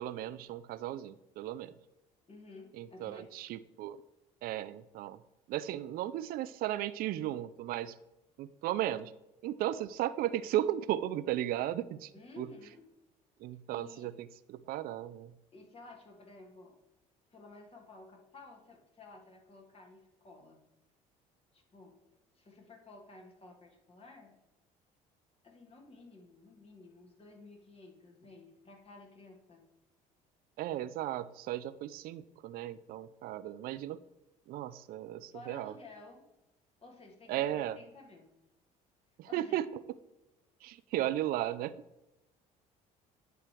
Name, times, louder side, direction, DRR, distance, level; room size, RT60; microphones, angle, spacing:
voice 1, 0.0-1.7 2.8-4.0 4.4-5.2 5.5-7.9 8.4-9.1 9.4-12.1 12.4-12.5 13.4-14.1 14.7-15.3 30.6-34.0 34.5-35.7 37.3-37.8 39.2-39.6 40.6-41.7, right 13 dB, 60° right, 14 dB, 0.4 m, -35 dB
voice 2, 2.2-3.4 12.1-12.9 13.7-14.1 15.5-16.7 17.3-20.6 21.5-24.3 25.4-29.6 35.3-36.3 36.8-38.3 39.3-39.6, left 3 dB, 35° left, 1 dB, 1.7 m, -54 dB
9.8 x 3.3 x 4.5 m, 0.93 s
supercardioid pair, 75°, 17 cm